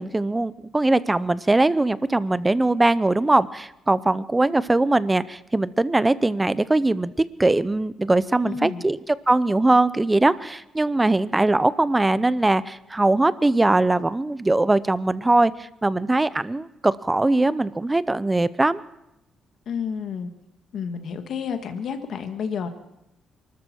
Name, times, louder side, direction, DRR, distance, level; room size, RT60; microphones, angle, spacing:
voice 1, 0.0-7.1 7.4-18.8, right 2 dB, 15° right, 17 dB, 0.6 m, -21 dB
voice 2, 8.4-8.8 19.7-20.3 20.7-22.7, left 6 dB, 65° left, 7 dB, 1.7 m, -30 dB
23.5 x 13.5 x 4.4 m, 0.86 s
cardioid pair, 90°, 0 cm